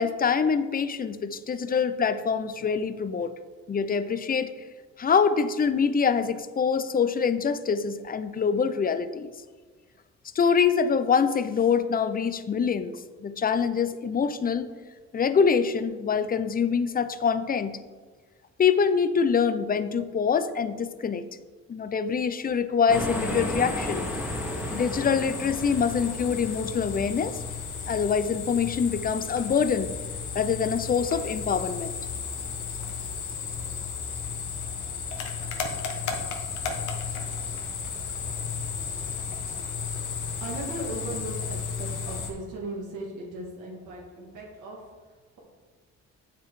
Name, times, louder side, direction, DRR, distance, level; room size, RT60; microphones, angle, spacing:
voice 1, 0.0-3.3 3.7-4.5 5.0-9.3 10.4-14.7 15.1-17.8 18.6-21.2 21.7-24.1 24.7-27.4 27.9-29.9 30.3-32.0, left 6 dB, 30° left, 12 dB, 0.5 m, -25 dB
sound 1, 22.9-42.3, left 5 dB, 75° left, 1.3 m, -34 dB
sound 2, 22.9-27.4, right 1 dB, 5° right, 1.5 m, -34 dB
voice 2, 40.4-44.8, right 2 dB, 90° right, -3 dB, 2.0 m, -37 dB
7.7 x 5.9 x 4.8 m, 1.4 s
cardioid pair, 90°, 30 cm